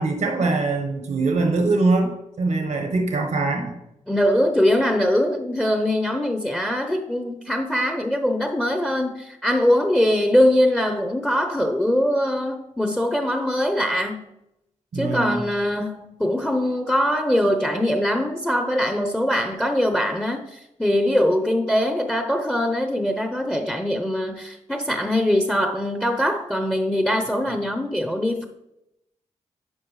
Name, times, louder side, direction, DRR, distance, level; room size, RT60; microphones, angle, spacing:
voice 1, 0.0-3.7 14.9-15.4 27.5-27.6, right 3 dB, 75° right, 3 dB, 1.2 m, -23 dB
voice 2, 4.1-14.2 14.9-28.5, left 1 dB, 5° left, 6 dB, 0.8 m, -22 dB
10.5 x 4.8 x 3.2 m, 0.85 s
cardioid pair, 50°, 14 cm